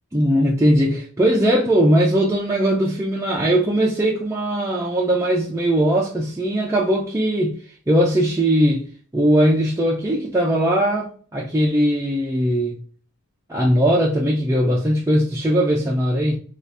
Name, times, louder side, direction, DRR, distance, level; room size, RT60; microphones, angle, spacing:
voice 1, 0.1-7.6 7.9-8.9 9.1-12.8 13.5-16.4, equal, 15° right, 0.4 m, -19 dB
2.7 x 2.4 x 3.3 m
head